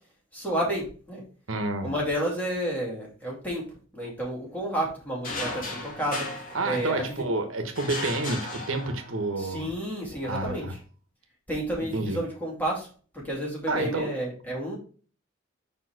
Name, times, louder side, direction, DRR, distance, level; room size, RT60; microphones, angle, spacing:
voice 1, 0.3-1.2 1.8-3.6 3.9-6.2 6.6-7.2 9.3-10.7 11.5-12.9 13.1-14.8, right 1 dB, 10° left, 2.4 m, -30 dB
voice 2, 1.5-1.9 6.5-9.7 10.2-10.7 11.9-12.2 13.7-14.1, right 2 dB, 85° right, 1.0 m, -29 dB
sound 1, 5.2-7.2 7.8-9.3, left 2 dB, 45° left, 2.1 m, -36 dB
5.4 x 4.5 x 4.6 m
head